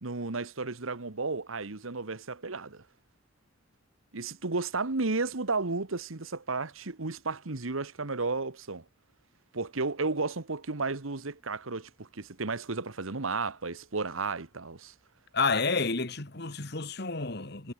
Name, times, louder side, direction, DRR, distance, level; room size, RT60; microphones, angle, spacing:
voice 1, 0.0-2.8 4.1-8.8 9.5-14.9, right 3 dB, 85° right, 1.5 m, -33 dB
voice 2, 15.3-17.7, left 4 dB, 55° left, 2.1 m, -30 dB
head